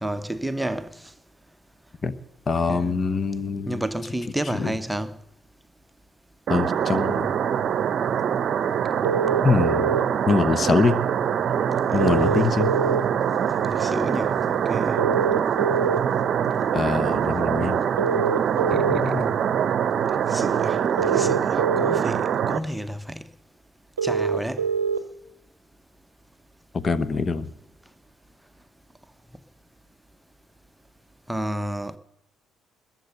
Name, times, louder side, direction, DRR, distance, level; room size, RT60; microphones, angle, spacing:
voice 1, 0.0-1.1 2.7-3.0 3.7-5.2 11.9-12.5 13.5-15.0 20.3-23.3 24.0-24.6 31.3-32.0, right 1 dB, 5° right, 0.9 m, -31 dB
voice 2, 2.5-3.8 4.5-4.7 6.5-7.3 9.4-9.9 10.3-11.0 11.9-12.7 16.7-17.8 18.7-19.4 26.7-27.5, left 4 dB, 35° left, 1.0 m, -23 dB
sound 1, 6.5-22.6, right 8 dB, 50° right, 0.7 m, -24 dB
sound 2, 9.0-10.0 12.0-13.0 15.0-16.0 18.0-19.0 21.0-22.0 24.0-25.0, right 6 dB, 90° right, 0.6 m, -24 dB
21.0 x 7.7 x 6.7 m
hypercardioid pair, 50°, 0 cm